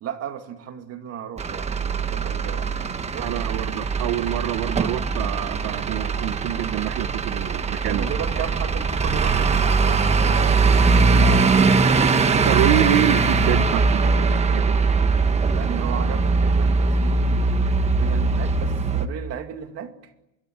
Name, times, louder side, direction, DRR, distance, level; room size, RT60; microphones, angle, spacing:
voice 1, 0.0-2.7 3.1-3.6 7.8-10.6 11.2-12.4 15.5-20.1, right 9 dB, 40° right, 2.3 m, -35 dB
Truck / Idling, 1.4-19.1, right 4 dB, 20° right, 1.2 m, -21 dB
voice 2, 3.2-8.1 12.5-14.9, right 14 dB, 80° right, 1.2 m, -26 dB
25.0 x 23.0 x 8.8 m
cardioid pair, 175°, 35 cm